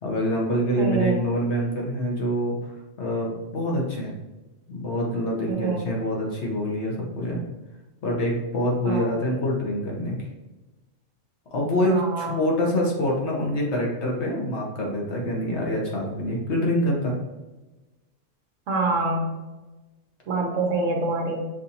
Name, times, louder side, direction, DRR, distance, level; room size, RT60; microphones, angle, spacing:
voice 1, 0.0-2.6 3.0-4.1 4.7-7.4 8.0-10.2 11.5-17.1, equal, 60° left, -2 dB, 1.3 m, -25 dB
voice 2, 0.8-1.2 5.5-5.9 8.8-9.1 11.8-12.4 18.7-19.3 20.3-21.5, right 3 dB, 75° right, 0 dB, 1.3 m, -25 dB
6.0 x 2.7 x 2.8 m, 1.1 s
omnidirectional pair, 1.3 m